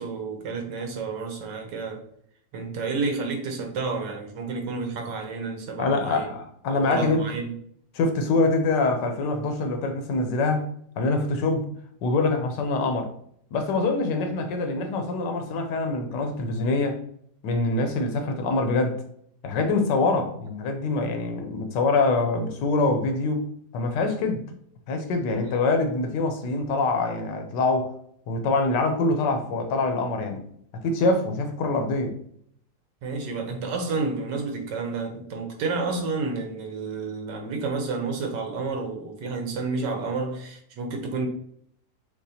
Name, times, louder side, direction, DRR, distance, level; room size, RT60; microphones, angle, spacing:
voice 1, 0.0-2.0 2.5-6.3 6.7-7.5 33.0-41.3, right 4 dB, 85° right, 1.5 m, -30 dB
voice 2, 5.8-7.3 7.9-10.6 11.0-11.7 12.0-13.1 13.5-17.0 17.4-19.0 19.4-23.5 23.7-24.4 24.9-27.9 28.3-30.4 30.8-32.2, left 3 dB, 85° left, 1.4 m, -24 dB
6.4 x 2.5 x 2.8 m
omnidirectional pair, 1.8 m